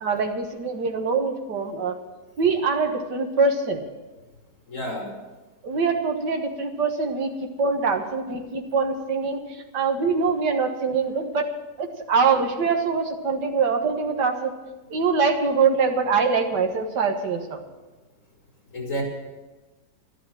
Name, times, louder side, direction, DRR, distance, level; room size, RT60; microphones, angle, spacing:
voice 1, 0.0-2.0 2.4-3.8 5.6-11.5 11.8-14.5 14.9-17.6, right 4 dB, 85° right, 4 dB, 2.0 m, -24 dB
voice 2, 4.7-5.1 18.7-19.0, equal, 50° left, -1 dB, 4.3 m, -29 dB
12.0 x 12.0 x 7.5 m, 1.2 s
omnidirectional pair, 1.8 m